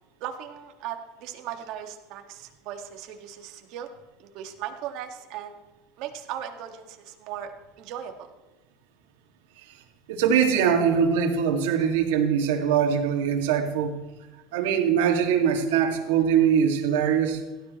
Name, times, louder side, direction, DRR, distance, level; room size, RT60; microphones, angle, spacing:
voice 1, 0.2-3.9 4.2-5.6 6.0-7.5 7.8-8.1, right 10 dB, 60° right, 4 dB, 1.9 m, -37 dB
voice 2, 10.1-14.0 14.5-17.4, right 7 dB, 90° right, 3 dB, 2.2 m, -22 dB
17.0 x 13.0 x 3.2 m, 1.1 s
supercardioid pair, 120°, 0 cm